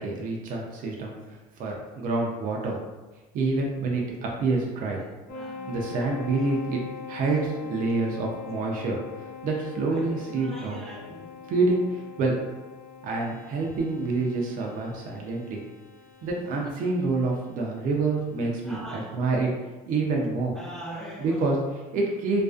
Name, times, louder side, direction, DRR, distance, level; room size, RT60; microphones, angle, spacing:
voice 1, 0.0-2.8 3.3-5.0 5.7-6.8 7.1-10.8 11.5-12.4 13.0-15.6 16.2-19.5 19.8-20.6 21.2-22.4, right 3 dB, 50° right, -1 dB, 0.5 m, -27 dB
sound 1, 5.3-18.4, left 5 dB, 60° left, 0.7 m, -43 dB
voice 2, 5.3-5.8 9.9-11.3 18.6-19.1 20.6-21.4, right 1 dB, 5° left, -3 dB, 0.4 m, -41 dB
2.4 x 2.3 x 2.3 m, 1.2 s
supercardioid pair, 95°, 17 cm